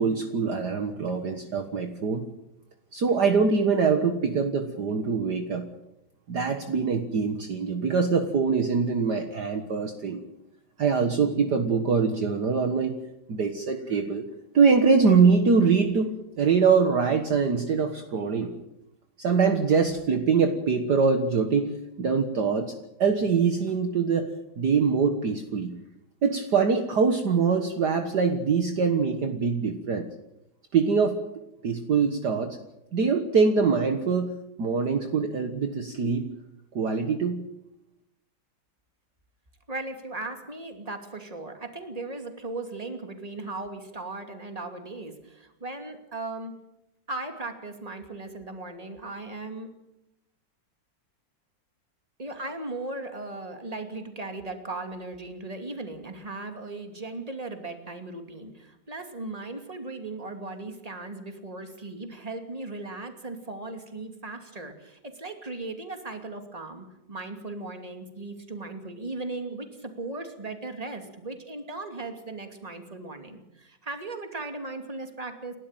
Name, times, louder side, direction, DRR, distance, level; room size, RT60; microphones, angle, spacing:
voice 1, 0.0-2.3 2.9-5.7 6.3-10.2 10.8-13.0 13.3-14.3 14.5-16.1 16.4-18.5 19.2-21.7 22.0-22.7 23.0-25.8 26.2-30.1 30.7-31.2 31.6-32.6 32.9-34.3 34.6-36.3 36.8-37.4, right 5 dB, 55° right, 6 dB, 1.9 m, -23 dB
voice 2, 39.7-46.5 47.1-49.7 52.2-75.6, right 2 dB, 15° right, 5 dB, 2.7 m, -37 dB
30.0 x 13.0 x 9.1 m, 0.87 s
omnidirectional pair, 2.3 m